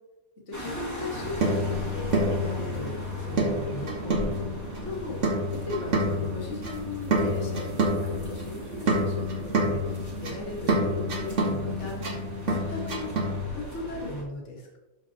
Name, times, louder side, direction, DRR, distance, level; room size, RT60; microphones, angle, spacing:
voice 1, 0.5-4.4 4.8-12.1 12.4-13.1 13.5-14.8, left 2 dB, 35° left, -3 dB, 2.0 m, -37 dB
sound 1, 0.5-14.2, equal, 10° left, 1.6 m, -40 dB
sound 2, 1.1-13.5, right 1 dB, 40° right, 1.3 m, -28 dB
12.0 x 4.5 x 2.9 m, 1.0 s
omnidirectional pair, 2.3 m